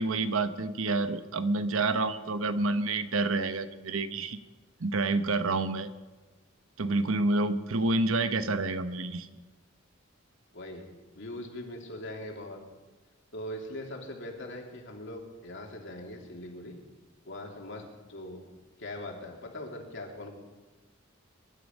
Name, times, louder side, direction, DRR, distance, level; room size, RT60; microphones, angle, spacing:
voice 1, 0.0-4.4 4.8-5.9 6.8-9.3, right 3 dB, 80° right, 11 dB, 1.0 m, -28 dB
voice 2, 10.5-10.9 11.2-12.6 13.3-16.8 17.3-18.4 18.8-20.3, left 1 dB, 65° left, 1 dB, 2.9 m, -41 dB
23.0 x 11.5 x 5.4 m, 1.3 s
head